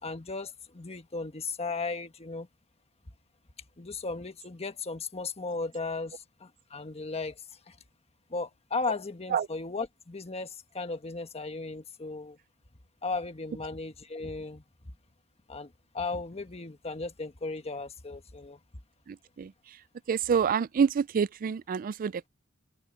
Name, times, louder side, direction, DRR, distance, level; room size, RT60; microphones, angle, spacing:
voice 1, 0.0-2.5 3.8-7.3 7.7-7.8 8.3-12.4 13.0-14.6 15.5-18.6, left 3 dB, 30° left, 1.3 m, -36 dB
voice 2, 19.1-19.5 20.1-22.3, right 6 dB, 40° right, 0.3 m, -27 dB
open air
head